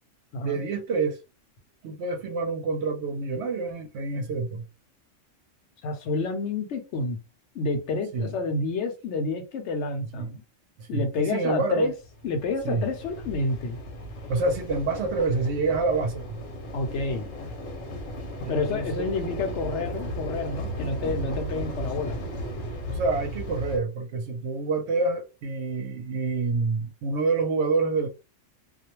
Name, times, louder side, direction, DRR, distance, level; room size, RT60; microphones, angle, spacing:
voice 1, 0.4-1.2 1.8-4.7 8.1-8.3 10.1-10.3 10.8-11.9 12.6-12.9 14.3-16.4 18.4-19.0 22.9-28.1, right 3 dB, 70° right, 0.8 m, -27 dB
voice 2, 5.8-7.2 7.5-10.4 10.9-11.9 12.2-13.8 16.7-17.3 18.5-22.2, left 3 dB, 70° left, 0.9 m, -29 dB
sound 1, 11.9-23.8, equal, 85° left, 1.1 m, -35 dB
2.4 x 2.1 x 2.9 m
omnidirectional pair, 1.3 m